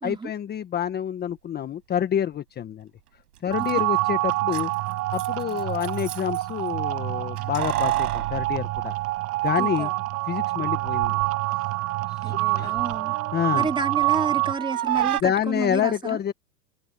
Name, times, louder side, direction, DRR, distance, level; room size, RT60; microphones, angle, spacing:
voice 1, 0.0-2.9 3.4-4.7 5.1-9.0 9.4-9.9 10.3-11.2 12.1-12.8 13.0-13.7 15.0-16.3, left 9 dB, 20° left, 1.3 m, -28 dB
Keys jangling, 3.4-3.5 3.6-3.7 4.3-6.4 7.4-9.5 9.8-9.9 10.8-11.3 11.7-14.2 14.5-15.2, right 13 dB, 75° right, 5.8 m, -32 dB
sound 1, 3.5-14.5, right 19 dB, 30° right, 1.2 m, -26 dB
voice 2, 9.6-9.9 12.2-13.2 13.5-15.9, right 4 dB, 10° right, 2.6 m, -30 dB
hypercardioid pair, 120°, 46 cm